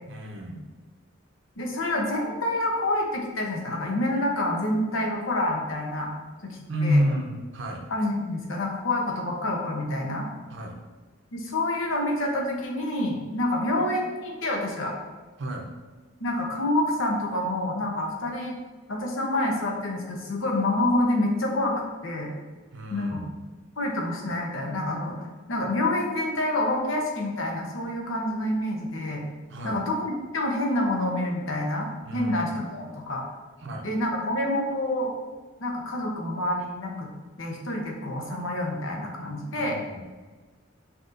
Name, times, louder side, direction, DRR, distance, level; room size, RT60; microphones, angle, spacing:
voice 1, 0.1-0.6 6.7-7.8 10.5-10.8 15.4-15.7 22.7-23.3 29.5-29.8 32.0-32.6 33.6-33.9 39.5-40.0, equal, 65° right, 1 dB, 0.7 m, -29 dB
voice 2, 1.6-6.1 6.4-7.0 7.9-10.3 11.3-14.9 16.2-18.6 18.9-22.3 22.9-23.2 23.8-25.2 25.5-29.2 29.6-33.2 33.8-35.1 35.6-37.1 37.4-39.8, left 1 dB, 75° left, 0 dB, 0.8 m, -27 dB
5.8 x 2.9 x 2.6 m, 1.4 s
head